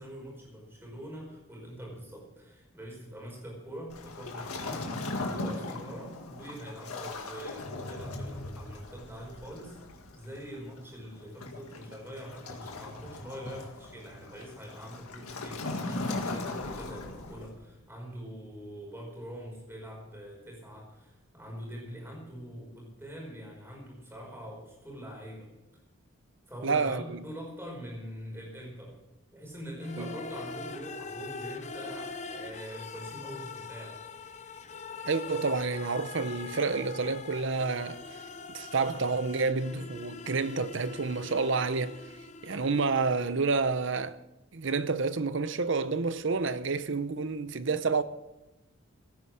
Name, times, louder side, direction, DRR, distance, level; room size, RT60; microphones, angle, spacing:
voice 1, 0.0-9.8 10.1-25.5 26.5-29.0 29.3-34.0, equal, 10° right, 5.1 m, -44 dB
Waves surf, 3.9-17.6, left 2 dB, 90° left, 2.0 m, -39 dB
voice 2, 26.6-27.2 30.0-30.1 35.0-38.0 38.5-42.0 42.4-44.2 44.5-48.0, right 4 dB, 55° right, 0.7 m, -29 dB
sound 1, 29.8-43.6, left 4 dB, 30° left, 0.6 m, -43 dB
17.0 x 9.9 x 6.2 m
head